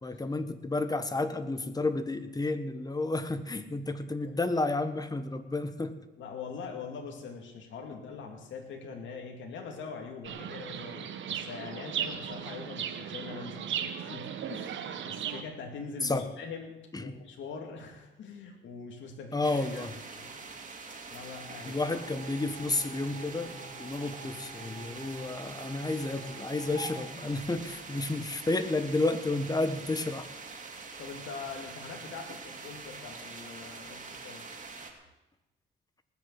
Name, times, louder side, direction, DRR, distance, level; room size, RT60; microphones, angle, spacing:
voice 1, 0.0-5.9 16.0-16.2 16.9-17.1 19.3-19.9 21.6-30.3, left 2 dB, 20° left, 10 dB, 1.4 m, -31 dB
voice 2, 6.2-20.5 21.1-22.0 31.0-34.5, left 5 dB, 70° left, 2 dB, 2.5 m, -43 dB
Chirp tweet, 10.2-15.4, right 9 dB, 70° right, 1.4 m, -37 dB
sound 1, 19.4-34.9, right 4 dB, 40° right, 2.7 m, -44 dB
sound 2, 21.6-28.1, right 1 dB, 40° left, 7.3 m, -48 dB
19.5 x 6.9 x 8.2 m, 1.0 s
cardioid pair, 90°, 20 cm